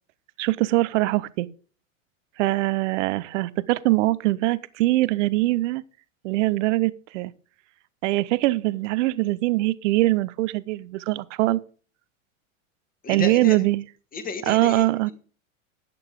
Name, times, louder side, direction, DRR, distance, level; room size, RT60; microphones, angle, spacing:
voice 1, 0.4-1.5 2.4-5.8 6.2-7.3 8.0-11.6 13.1-13.8 14.5-15.1, right 18 dB, 60° right, 0.8 m, -22 dB
voice 2, 13.0-13.6 14.1-15.1, left 5 dB, 20° left, 2.1 m, -32 dB
11.5 x 8.8 x 3.7 m
hypercardioid pair, 110°, 41 cm